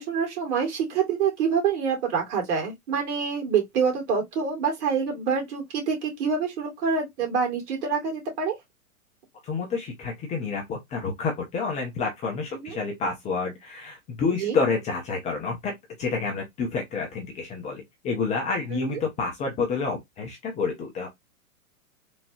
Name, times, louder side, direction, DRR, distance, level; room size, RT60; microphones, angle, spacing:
voice 1, 0.0-8.5 12.5-12.8 14.3-14.6 18.7-19.0, right 6 dB, 50° right, 2.3 m, -26 dB
voice 2, 9.4-21.1, left 4 dB, 15° left, 0.6 m, -29 dB
3.6 x 3.0 x 2.7 m
hypercardioid pair, 120°, 44 cm